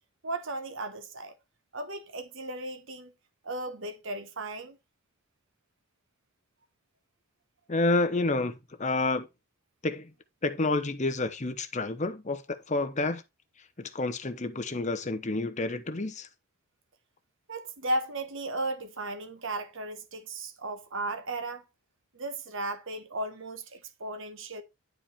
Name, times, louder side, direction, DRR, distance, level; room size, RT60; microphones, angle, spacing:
voice 1, 0.2-1.3 1.7-3.1 3.4-4.8 17.5-21.6 22.1-24.6, right 2 dB, 60° right, 1.1 m, -35 dB
voice 2, 7.7-9.3 9.8-10.1 10.4-12.4 12.7-13.2 13.8-16.3, left 2 dB, 30° left, 0.9 m, -29 dB
10.5 x 4.9 x 4.3 m
head